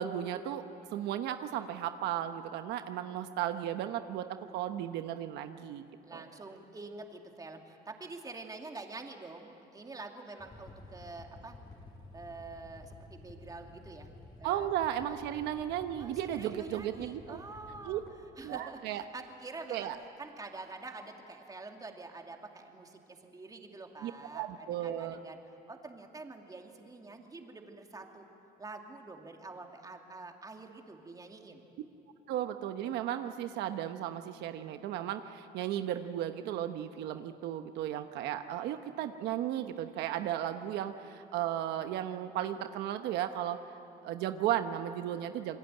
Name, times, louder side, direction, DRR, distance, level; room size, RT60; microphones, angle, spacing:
voice 1, 0.0-5.8 6.1-6.2 14.4-17.4 17.8-18.0 18.4-19.0 19.7-20.0 24.0-25.2 32.3-43.6 44.0-45.6, right 11 dB, 85° right, 8 dB, 1.1 m, -35 dB
voice 2, 6.0-11.5 12.1-14.1 14.4-14.7 16.0-18.0 18.4-19.9 20.2-25.4 25.7-28.3 28.6-31.6, right 3 dB, 20° right, 3 dB, 2.7 m, -46 dB
sound 1, 10.4-18.3 19.5-19.6 19.9-20.0, left 2 dB, 25° left, 4.9 m, -52 dB
28.0 x 21.5 x 9.1 m, 2.6 s
cardioid pair, 110°, 17 cm